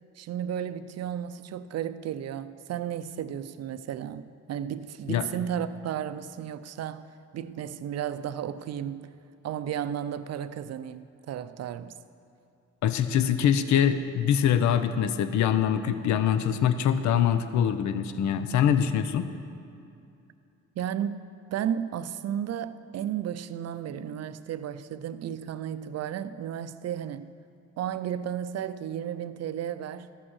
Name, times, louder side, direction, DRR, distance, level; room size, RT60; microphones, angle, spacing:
voice 1, 0.2-7.1 7.3-9.1 9.4-11.9 20.8-21.3 21.5-27.3 27.8-30.1, right 9 dB, 55° right, 0.5 m, -33 dB
voice 2, 12.8-19.2, left 9 dB, 70° left, 0.6 m, -24 dB
13.5 x 6.1 x 6.3 m
cardioid pair, 90°, 30 cm